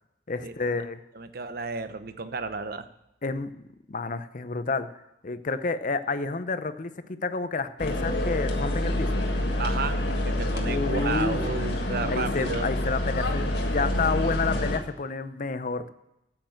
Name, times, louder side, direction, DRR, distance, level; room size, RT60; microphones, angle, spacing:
voice 1, 0.3-1.0 3.2-3.6 3.9-4.9 5.2-9.3 10.7-11.4 12.0-15.9, left 3 dB, 45° left, 12 dB, 0.6 m, -30 dB
voice 2, 1.1-2.9 9.6-12.7, right 4 dB, 55° right, 11 dB, 0.8 m, -33 dB
sound 1, 7.8-14.8, left 1 dB, 60° left, 1.6 m, -27 dB
8.9 x 7.9 x 7.7 m, 0.87 s
head